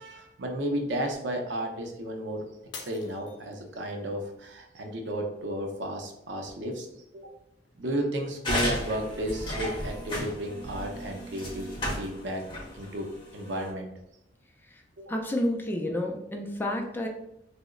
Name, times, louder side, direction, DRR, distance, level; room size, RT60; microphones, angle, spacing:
voice 1, 0.0-2.5 2.7-6.9 7.1-7.3 7.8-12.4 12.7-13.9 15.0-15.1, right 1 dB, 70° right, 3 dB, 0.6 m, -33 dB
Shatter, 2.7-4.0 4.5-5.0 5.5-5.6, left 5 dB, 70° left, 0.5 m, -45 dB
sound 1, 8.4-13.7, equal, 30° left, 0.9 m, -34 dB
voice 2, 15.1-17.1, left 1 dB, 10° left, 1 dB, 0.4 m, -30 dB
2.9 x 2.0 x 3.6 m, 0.83 s
head